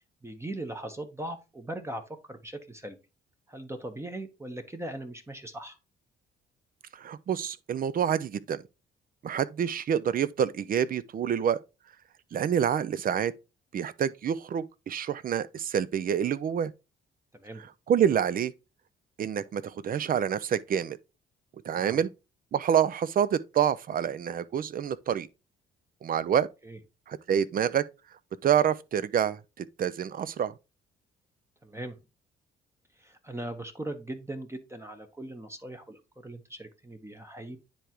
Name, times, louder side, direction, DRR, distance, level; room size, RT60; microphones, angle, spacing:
voice 1, 0.2-3.0 3.5-5.8 17.3-17.6 21.8-22.0 26.6-26.8 31.6-31.9 32.9-37.6, right 1 dB, 15° right, 1.0 m, -39 dB
voice 2, 7.0-8.6 9.2-11.6 12.3-13.3 13.7-16.7 17.9-18.5 19.2-21.0 21.6-22.1 22.5-25.3 26.0-26.5 27.1-27.8 28.4-30.5, right 9 dB, 45° right, 0.5 m, -27 dB
9.9 x 3.5 x 2.9 m
cardioid pair, 90°, 20 cm